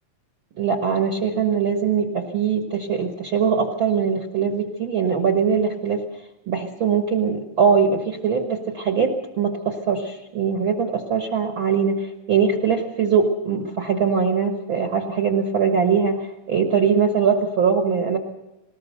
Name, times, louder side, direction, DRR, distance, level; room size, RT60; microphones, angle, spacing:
voice 1, 0.6-6.0 6.5-18.2, right 6 dB, 50° right, 4 dB, 1.5 m, -21 dB
20.0 x 19.5 x 6.7 m, 0.97 s
omnidirectional pair, 4.0 m